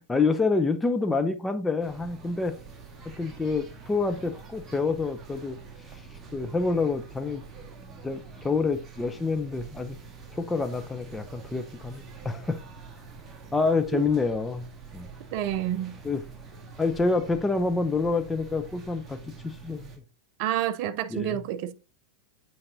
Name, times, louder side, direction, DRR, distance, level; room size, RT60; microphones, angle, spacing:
voice 1, 0.0-2.6 3.2-5.6 6.3-7.5 8.0-10.0 10.3-12.6 13.5-14.6 14.9-15.1 16.0-16.2 16.8-19.9 21.1-21.4, left 4 dB, 10° left, 0.5 m, -27 dB
sound 1, 1.8-20.0, right 4 dB, 15° right, 1.6 m, -46 dB
voice 2, 15.3-15.9 20.4-21.7, right 11 dB, 45° right, 0.6 m, -28 dB
8.5 x 4.6 x 2.7 m
figure-of-eight pair, 90°, 0 cm